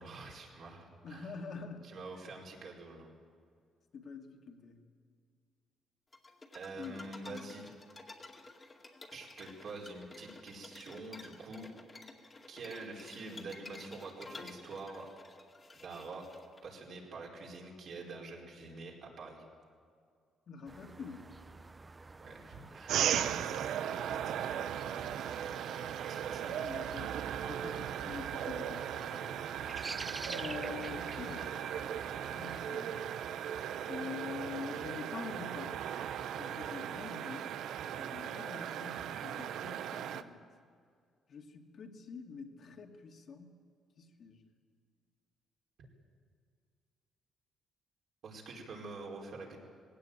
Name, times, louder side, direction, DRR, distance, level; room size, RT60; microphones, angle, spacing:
voice 1, 0.0-1.3 1.8-3.1 6.5-7.7 9.1-11.7 12.5-15.1 15.7-16.2 16.6-19.4 22.2-25.1 26.1-26.4 30.7-31.5 48.2-49.6, right 3 dB, 55° right, -1 dB, 4.7 m, -47 dB
voice 2, 1.0-1.9 3.9-4.8 6.7-7.5 20.5-21.3 26.5-29.4 30.2-31.6 32.3-33.1 33.8-35.8 36.3-37.5 38.0-40.4 41.3-43.5 44.0-44.4, left 5 dB, 55° left, 2 dB, 2.2 m, -46 dB
sound 1, 6.1-16.6, left 2 dB, 25° left, 2.2 m, -52 dB
sound 2, 20.7-32.6, right 3 dB, 20° right, 0.6 m, -50 dB
sound 3, 22.9-40.2, right 9 dB, 75° right, 0.8 m, -37 dB
19.5 x 17.0 x 9.0 m, 2.2 s
cardioid pair, 115°, 0 cm